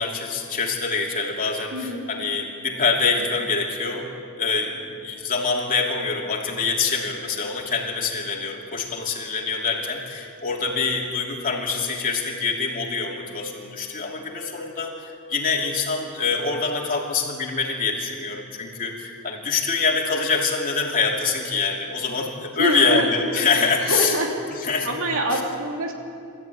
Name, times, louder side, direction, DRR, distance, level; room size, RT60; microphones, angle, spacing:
voice 1, 0.0-24.1 24.6-24.9, left 4 dB, 40° left, -1 dB, 3.0 m, -25 dB
voice 2, 1.7-2.1 2.8-3.2 22.6-23.1 23.4-24.3 24.8-25.9, right 1 dB, 65° right, 1 dB, 2.8 m, -26 dB
21.0 x 13.5 x 9.3 m, 2.5 s
head